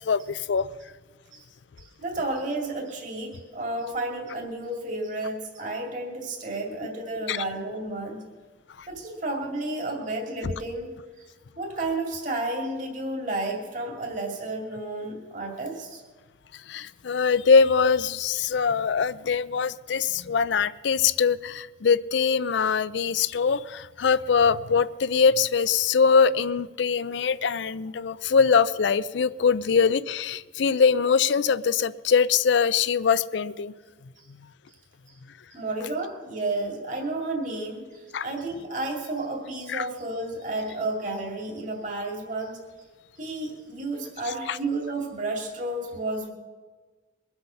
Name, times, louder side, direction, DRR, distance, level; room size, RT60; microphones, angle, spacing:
voice 1, 0.0-0.7 7.3-7.4 10.4-10.5 16.7-33.7 38.1-38.3 39.7-39.9 44.5-44.6, left 5 dB, 70° left, 17 dB, 0.5 m, -22 dB
voice 2, 1.8-8.2 8.9-10.9 11.2-11.3 11.6-16.0 35.5-42.6 43.2-46.3, right 2 dB, 40° right, 0 dB, 2.4 m, -32 dB
22.5 x 7.9 x 5.7 m, 1.4 s
head